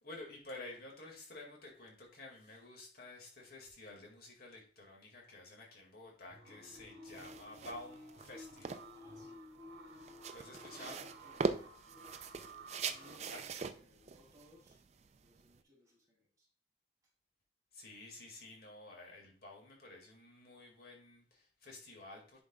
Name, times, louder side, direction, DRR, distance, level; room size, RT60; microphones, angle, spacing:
voice 1, 0.0-8.8 10.3-11.0 13.3-13.4 17.7-22.4, left 2 dB, 55° left, -1 dB, 2.2 m, -51 dB
sound 1, 6.3-13.2, equal, 55° right, 2.3 m, -54 dB
sound 2, 7.1-15.6, right 4 dB, 40° right, 0.4 m, -42 dB
voice 2, 8.9-10.0 10.3-12.1 12.8-14.8 15.2-16.5, left 1 dB, 20° right, -4 dB, 3.1 m, -64 dB
10.0 x 5.1 x 2.4 m, 0.42 s
head